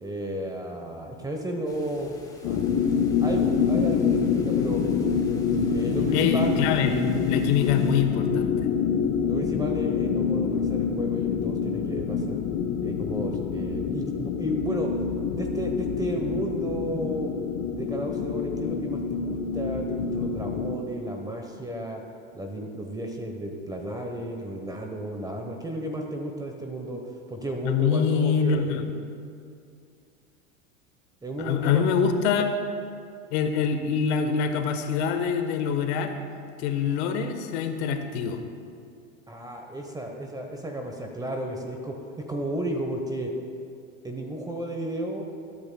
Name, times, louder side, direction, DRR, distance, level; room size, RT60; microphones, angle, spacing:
voice 1, 0.0-2.1 2.4-4.8 5.7-6.5 9.3-12.4 12.8-15.0 15.3-17.3 17.7-22.0 22.3-27.0 27.3-28.8 31.2-31.8 39.3-43.3 44.0-45.2, right 1 dB, 10° right, 2 dB, 0.9 m, -33 dB
sound 1, 1.7-8.0, left 2 dB, 10° left, 1.5 m, -47 dB
sound 2, 2.4-20.7, left 6 dB, 40° left, 0.8 m, -26 dB
voice 2, 6.1-8.7 27.6-28.8 31.4-32.5 33.3-36.2 36.6-38.4, left 6 dB, 60° left, 7 dB, 1.2 m, -25 dB
20.0 x 8.9 x 2.2 m, 2.4 s
hypercardioid pair, 105°, 38 cm